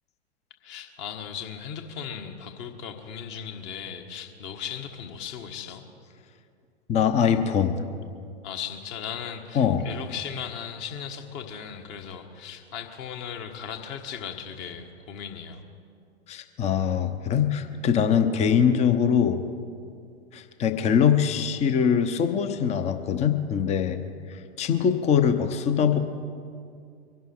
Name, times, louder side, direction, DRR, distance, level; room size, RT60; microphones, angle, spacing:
voice 1, 0.6-5.8 8.4-15.6, left 8 dB, 35° left, 5 dB, 1.5 m, -37 dB
voice 2, 6.9-7.8 9.5-9.9 16.3-19.4 20.3-24.0 24.3-26.0, left 7 dB, 20° left, 9 dB, 0.8 m, -23 dB
23.5 x 11.0 x 4.5 m, 2.4 s
figure-of-eight pair, 100°, 33 cm